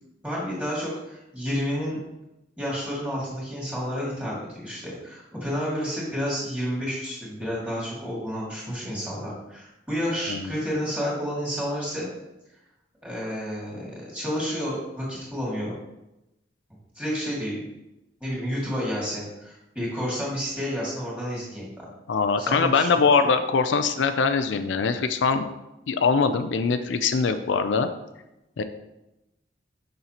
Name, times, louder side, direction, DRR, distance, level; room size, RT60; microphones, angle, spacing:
voice 1, 0.2-2.0 2.6-12.1 13.0-15.7 17.0-17.6 18.2-21.7 22.4-22.9, equal, 5° right, -6 dB, 2.0 m, -30 dB
voice 2, 22.1-25.5 25.9-27.9 28.6-28.7, left 5 dB, 80° left, 9 dB, 0.4 m, -22 dB
6.6 x 5.6 x 2.9 m, 0.92 s
head